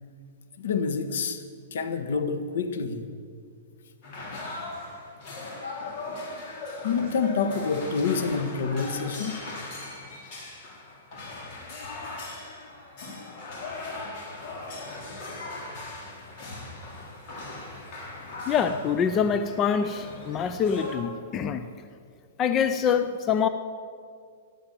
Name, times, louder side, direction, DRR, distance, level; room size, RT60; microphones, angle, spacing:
voice 1, 0.6-1.4 1.7-3.1 4.3-4.4 6.8-9.4, left 5 dB, 70° left, 9 dB, 1.5 m, -27 dB
sound 1, 4.0-20.9, left 2 dB, 35° left, 3.6 m, -39 dB
voice 2, 18.5-21.7 22.4-23.5, left 7 dB, 20° left, 10 dB, 0.5 m, -25 dB
13.5 x 11.5 x 7.5 m, 2.2 s
hypercardioid pair, 165°, 0 cm